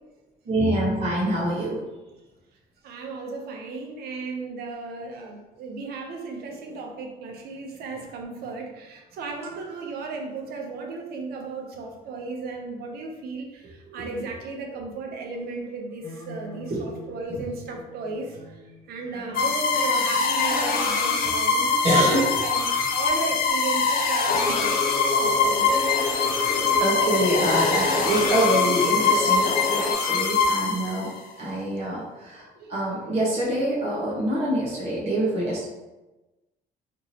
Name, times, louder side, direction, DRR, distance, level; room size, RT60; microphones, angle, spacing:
voice 1, 0.4-1.8 13.6-13.7 14.0-14.1 16.7-17.4 21.8-22.3 26.2-31.1 31.4-35.6, right 1 dB, 40° right, -7 dB, 1.2 m, -26 dB
voice 2, 2.8-13.5 13.9-18.3 18.9-24.7 25.2-25.7 27.3-27.9 32.7-32.9, right 3 dB, 65° right, 2 dB, 0.8 m, -35 dB
sound 1, 16.0-25.1 25.7-29.9, equal, 15° left, 0.5 m, -43 dB
sound 2, 19.3-31.2, left 4 dB, 60° left, 0.7 m, -23 dB
sound 3, 24.3-29.9, left 4 dB, 35° left, 1.0 m, -30 dB
3.5 x 2.9 x 2.9 m, 1.1 s
cardioid pair, 110°, 17 cm